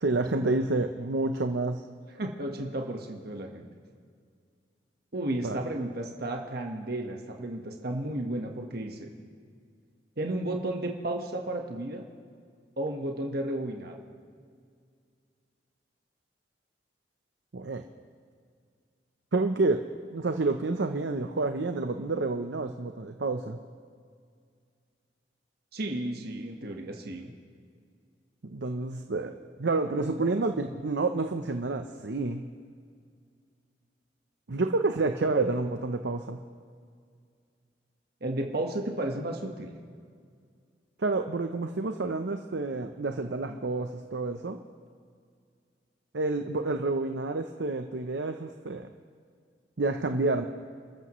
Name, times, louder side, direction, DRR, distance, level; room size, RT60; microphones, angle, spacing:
voice 1, 0.0-1.8 5.4-5.6 17.5-17.8 19.3-19.8 20.1-23.6 28.4-29.3 29.6-32.4 34.5-36.4 41.0-44.6 46.1-48.9 49.8-50.4, right 3 dB, 80° right, 6 dB, 0.8 m, -29 dB
voice 2, 2.1-3.6 5.1-9.1 10.2-12.0 12.8-14.0 25.7-27.3 38.2-39.7, right 1 dB, 60° right, 2 dB, 1.4 m, -33 dB
29.5 x 14.0 x 3.2 m, 2.2 s
head